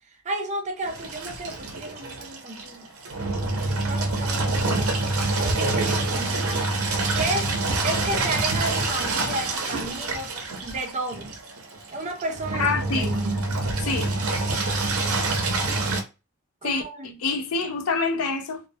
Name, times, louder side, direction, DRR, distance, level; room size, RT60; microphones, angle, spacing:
voice 1, 0.2-2.9 3.8-5.0 5.3-6.8 7.0-7.5 7.8-10.3 10.6-11.3 11.9-13.4 16.6-17.2, right 2 dB, 35° right, 0.5 m, -32 dB
Engine, 0.9-16.0, right 2 dB, 85° right, 0.6 m, -26 dB
voice 2, 12.6-13.1 13.8-14.1 16.6-16.8 17.2-18.6, left 4 dB, 75° left, 0.4 m, -26 dB
2.2 x 2.1 x 2.6 m
head